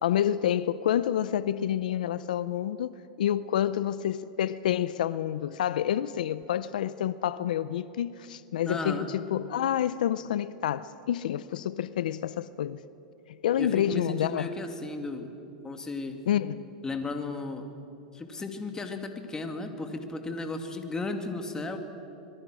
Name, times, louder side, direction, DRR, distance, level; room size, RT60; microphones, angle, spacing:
voice 1, 0.0-2.9 3.2-12.8 13.4-14.5 16.3-16.7, left 10 dB, 80° left, 0.6 m, -28 dB
voice 2, 8.6-9.1 13.6-15.3 15.6-16.2 16.8-17.7 18.1-21.8, left 3 dB, 15° left, 2.4 m, -34 dB
26.5 x 22.0 x 6.4 m
hypercardioid pair, 120°, 4 cm